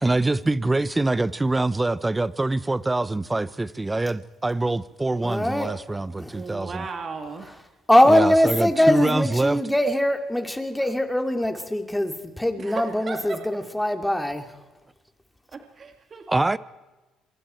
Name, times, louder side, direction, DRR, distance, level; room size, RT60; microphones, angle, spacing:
voice 1, 0.0-6.8 8.1-9.6 16.3-16.6, right 2 dB, 15° right, 0.9 m, -24 dB
voice 2, 5.2-5.7 6.2-6.3 7.9-14.5, left 1 dB, 5° left, 2.9 m, -22 dB
voice 3, 6.3-7.6 8.7-9.1 10.8-10.9 12.5-13.4 15.5-16.2, right 4 dB, 40° right, 2.6 m, -36 dB
27.5 x 24.5 x 4.6 m
supercardioid pair, 80°, 0 cm